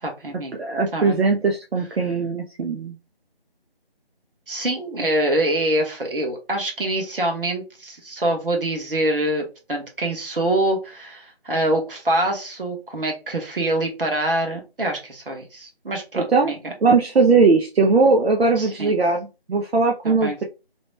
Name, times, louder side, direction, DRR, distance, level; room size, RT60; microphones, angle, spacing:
voice 1, 0.0-0.5 0.9-1.2 4.5-16.7 18.6-18.9 20.0-20.4, right 1 dB, 60° right, 2 dB, 1.2 m, -25 dB
voice 2, 0.6-2.9 16.2-16.5 16.8-20.4, right 4 dB, 80° right, 3 dB, 0.6 m, -19 dB
2.9 x 2.1 x 3.1 m, 0.29 s
figure-of-eight pair, 170°, 31 cm